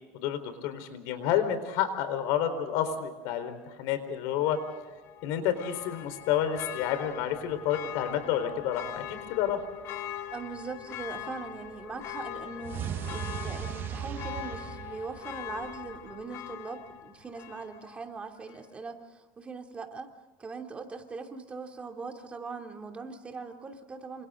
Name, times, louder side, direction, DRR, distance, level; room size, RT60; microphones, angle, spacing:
voice 1, 0.1-4.6 5.2-9.6, left 9 dB, 70° left, 10 dB, 4.2 m, -29 dB
Church bell, 4.4-18.1 18.5-18.6, left 11 dB, 50° left, 2.0 m, -42 dB
voice 2, 10.3-20.1 20.4-24.3, right 4 dB, 20° right, 3 dB, 2.8 m, -41 dB
sound 1, 12.6-15.8, right 10 dB, 35° right, 0.9 m, -37 dB
28.0 x 27.0 x 3.8 m, 1.2 s
supercardioid pair, 135°, 6 cm